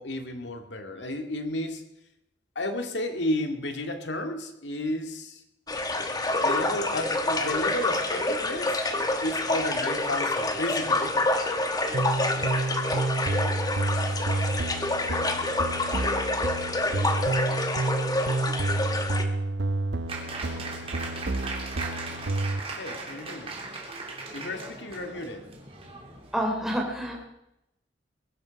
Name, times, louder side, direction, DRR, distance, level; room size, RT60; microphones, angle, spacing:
voice 1, 0.0-1.8 2.6-5.4 6.4-8.8 9.2-11.1 14.3-14.5 22.8-23.6 24.3-25.4, left 1 dB, 80° left, 6 dB, 2.1 m, -32 dB
sound 1, 5.7-19.2, left 2 dB, 20° left, 1.4 m, -27 dB
sound 2, 11.9-22.6, right 2 dB, 75° right, 0.8 m, -29 dB
Applause, 20.1-26.5, right 3 dB, 35° right, 3.3 m, -38 dB
voice 2, 26.3-27.2, equal, ahead, -1 dB, 3.4 m, -28 dB
22.0 x 11.0 x 5.2 m, 0.84 s
head